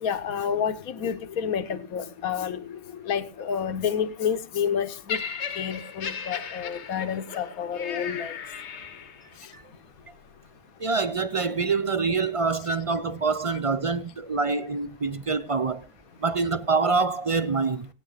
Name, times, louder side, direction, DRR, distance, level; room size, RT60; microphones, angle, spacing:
voice 1, 0.0-5.2 5.6-8.4, left 7 dB, 80° left, 1.4 m, -29 dB
Laughter, 5.1-9.3 10.1-10.3, left 6 dB, 55° left, 1.1 m, -36 dB
voice 2, 10.8-15.9 16.2-17.9, right 4 dB, 45° right, 0.4 m, -25 dB
18.0 x 9.3 x 4.0 m
omnidirectional pair, 1.5 m